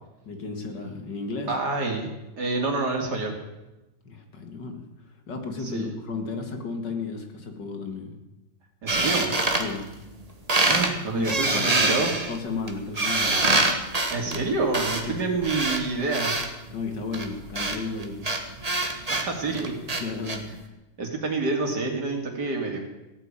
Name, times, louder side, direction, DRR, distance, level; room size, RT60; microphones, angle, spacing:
voice 1, 0.3-1.5 4.0-4.9 5.3-8.2 9.6-9.9 11.1-12.0 12.3-13.4 15.0-15.4 16.7-18.3 20.0-20.5, left 4 dB, 60° left, 5 dB, 2.5 m, -33 dB
voice 2, 1.5-2.1 2.4-3.4 5.6-5.9 8.8-9.3 10.7-12.1 14.1-16.3 19.1-19.7 21.0-22.8, right 3 dB, 55° right, 2 dB, 3.2 m, -27 dB
sound 1, 8.9-10.2 10.5-10.9 11.2-16.5 17.1-20.4, right 2 dB, 20° right, 1.5 m, -25 dB
16.5 x 9.2 x 8.9 m, 1.0 s
omnidirectional pair, 2.2 m